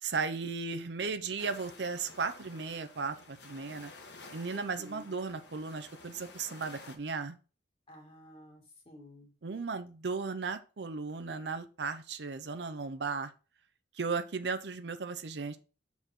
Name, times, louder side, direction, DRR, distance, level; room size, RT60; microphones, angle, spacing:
voice 1, 0.0-3.9 4.3-7.4 9.4-13.3 14.0-15.6, right 4 dB, 70° right, 10 dB, 0.6 m, -36 dB
sound 1, 1.4-7.0, left 3 dB, 75° left, 1.4 m, -52 dB
voice 2, 4.5-5.2 7.9-9.3, left 1 dB, 30° left, 0 dB, 2.3 m, -52 dB
6.9 x 4.1 x 4.4 m, 0.34 s
head